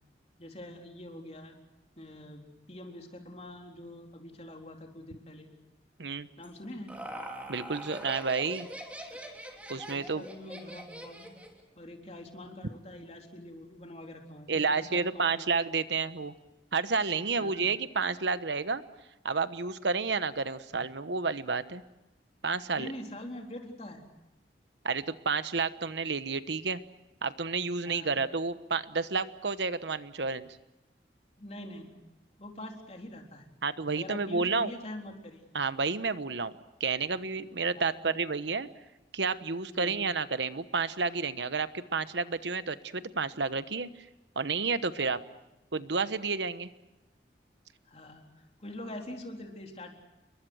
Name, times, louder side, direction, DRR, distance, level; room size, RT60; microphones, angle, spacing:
voice 1, 0.4-1.6 2.0-5.5 6.4-7.0 9.7-11.3 11.7-15.5 17.4-17.6 22.8-24.1 27.8-28.1 31.4-32.0 32.4-33.5 33.9-35.5 37.7-38.0 39.6-40.1 47.8-49.9, left 1 dB, 35° left, 2 dB, 3.8 m, -44 dB
Laughter, 6.4-11.6, right 1 dB, 10° right, 3.2 m, -43 dB
voice 2, 7.5-8.7 9.7-10.2 14.5-16.3 16.7-18.8 19.2-21.8 22.4-22.9 24.8-26.8 27.2-30.5 33.6-34.7 35.5-36.5 36.8-38.7 39.1-43.9 44.4-45.2 45.7-46.7, right 4 dB, 85° right, 12 dB, 1.1 m, -30 dB
29.5 x 23.0 x 6.4 m, 0.99 s
head